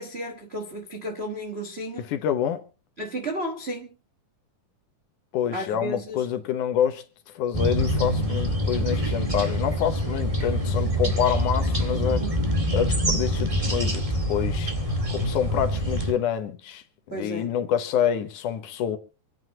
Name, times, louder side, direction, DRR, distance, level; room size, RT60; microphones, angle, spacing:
voice 1, 0.0-2.1 3.0-3.9 5.5-6.2 12.0-12.3 17.1-17.5, right 1 dB, 60° right, 0.6 m, -33 dB
voice 2, 2.0-2.6 5.3-12.2 12.7-14.7 15.1-19.0, left 9 dB, 75° left, 2.6 m, -27 dB
sound 1, 7.5-16.1, equal, 15° right, 1.4 m, -25 dB
26.5 x 9.4 x 3.0 m
omnidirectional pair, 3.7 m